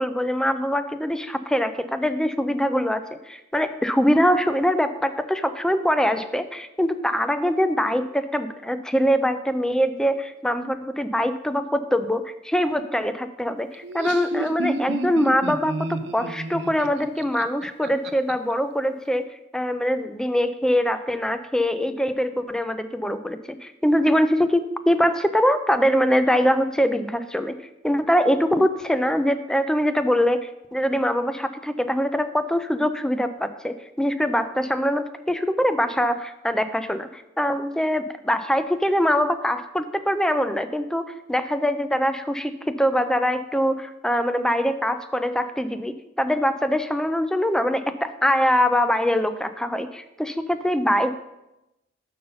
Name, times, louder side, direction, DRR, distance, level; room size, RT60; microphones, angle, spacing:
voice 1, 0.0-19.3 19.5-27.5 27.8-51.1, equal, 5° left, 11 dB, 0.4 m, -23 dB
Laughter, 13.7-18.3, right 2 dB, 65° right, 0.5 m, -31 dB
6.6 x 5.5 x 5.5 m, 0.93 s
head